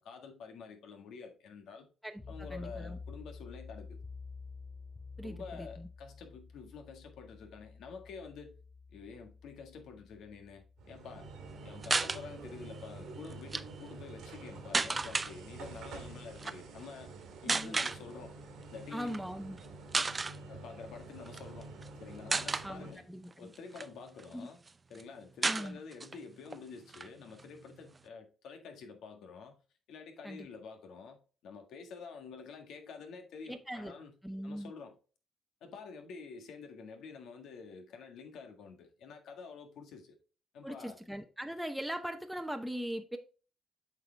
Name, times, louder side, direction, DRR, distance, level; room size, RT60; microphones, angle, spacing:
voice 1, 0.0-1.9 2.3-4.0 5.2-8.6 8.9-11.3 11.6-17.1 17.4-18.4 18.7-19.2 20.5-21.7 22.0-23.1 23.4-24.6 24.9-29.6 29.9-34.1 34.4-34.9 35.6-40.2 40.5-41.0, left 5 dB, 80° left, 1.7 m, -48 dB
voice 2, 2.0-3.0 5.2-5.9 17.5-17.8 18.9-19.6 22.6-23.5 24.3-24.5 25.5-25.8 30.2-30.5 33.5-33.9 34.2-34.7 40.6-43.2, equal, 5° right, 0.8 m, -40 dB
sound 1, 2.2-13.3, left 4 dB, 20° left, 2.5 m, -50 dB
sound 2, 10.8-22.9, right 3 dB, 85° right, 1.9 m, -48 dB
sound 3, 11.8-12.2 13.3-13.6 14.7-15.3 16.4-16.6 17.5-18.0 19.0-19.2 19.6-19.7 19.9-20.4 21.3-21.9 22.3-22.7 23.3-24.3 24.7-24.8 25.0-25.1 25.4-26.2 26.5-26.6 26.9-28.0, right 3 dB, 25° right, 0.5 m, -33 dB
8.0 x 4.8 x 3.3 m
cardioid pair, 90°, 0 cm